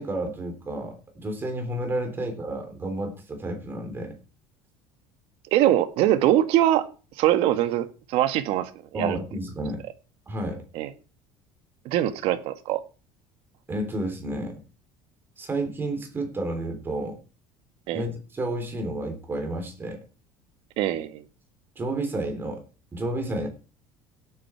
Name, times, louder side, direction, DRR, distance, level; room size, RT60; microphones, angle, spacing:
voice 1, 0.0-4.1 8.9-9.8 10.3-10.6 13.7-14.6 15.4-17.2 17.9-20.0 21.8-22.6 22.9-23.5, right 1 dB, 20° right, 3.6 m, -31 dB
voice 2, 5.5-6.9 7.2-9.2 10.7-10.9 11.8-12.8 17.9-18.0 20.8-21.2, right 13 dB, 65° right, 1.6 m, -23 dB
17.0 x 8.7 x 4.6 m
cardioid pair, 135°, 11 cm